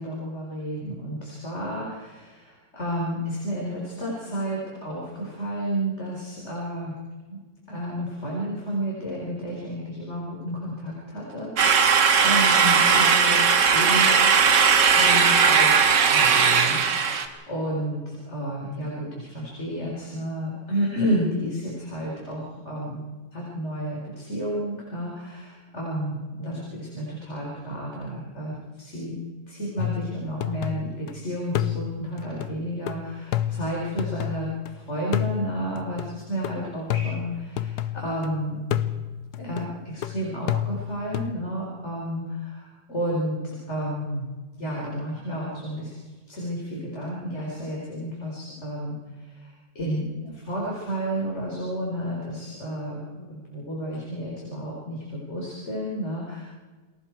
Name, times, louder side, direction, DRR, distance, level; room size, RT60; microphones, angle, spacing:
voice 1, 0.0-6.9 7.3-7.4 7.7-14.3 14.8-23.1 23.3-29.2 29.5-38.7 39.4-44.3 44.6-46.0 46.3-56.4, equal, 40° left, -4 dB, 4.6 m, -31 dB
sound 1, 11.6-17.3, right 6 dB, 80° right, 2.1 m, -18 dB
sound 2, 29.8-31.1 31.5-34.7 35.1-38.3 38.7-41.3, left 11 dB, 70° left, 1.3 m, -30 dB
29.0 x 20.5 x 4.6 m, 1.3 s
omnidirectional pair, 1.9 m